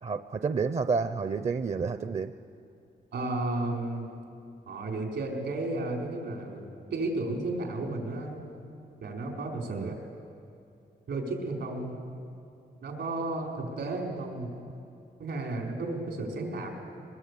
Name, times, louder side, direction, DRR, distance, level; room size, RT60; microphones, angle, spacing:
voice 1, 0.0-2.3 9.7-9.9, right 5 dB, 40° right, 10 dB, 0.6 m, -30 dB
voice 2, 3.1-4.1 4.7-8.4 9.0-9.9 11.1-12.0 12.8-14.5 15.2-16.7, right 2 dB, 90° right, 0 dB, 4.7 m, -33 dB
22.0 x 21.0 x 8.4 m, 2.6 s
cardioid pair, 100°, 17 cm